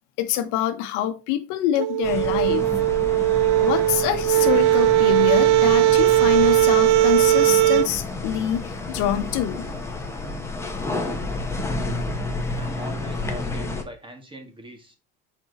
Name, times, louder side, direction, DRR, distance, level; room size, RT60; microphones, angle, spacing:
voice 1, 0.2-2.7 3.6-9.6, left 11 dB, 75° left, 1.0 m, -25 dB
sound 1, 1.8-7.9, right 14 dB, 90° right, 0.5 m, -18 dB
sound 2, 2.0-13.8, left 2 dB, 10° left, 1.1 m, -31 dB
voice 2, 12.5-14.9, right 1 dB, 15° right, 1.9 m, -42 dB
6.0 x 4.6 x 4.1 m
cardioid pair, 130°, 30 cm